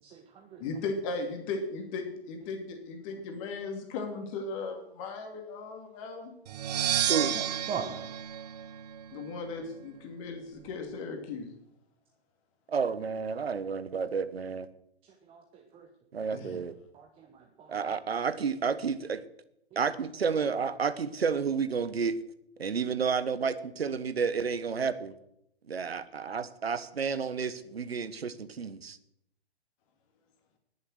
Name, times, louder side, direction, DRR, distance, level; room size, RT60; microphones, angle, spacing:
voice 1, 0.0-0.6 7.3-8.1 15.0-15.9 16.2-16.3 16.9-17.9 19.7-19.8, right 6 dB, 15° right, 4 dB, 1.3 m, -42 dB
voice 2, 0.6-6.3 9.1-11.5 16.3-16.6, left 3 dB, 30° left, 4 dB, 2.4 m, -37 dB
sound 1, 6.5-9.3, right 11 dB, 40° right, 0.6 m, -31 dB
voice 3, 12.7-14.7 16.1-16.7 17.7-19.2 19.7-22.2 22.6-25.1 25.7-29.0, right 5 dB, 70° right, 14 dB, 1.2 m, -31 dB
20.0 x 7.1 x 6.5 m, 0.77 s
figure-of-eight pair, 115°, 32 cm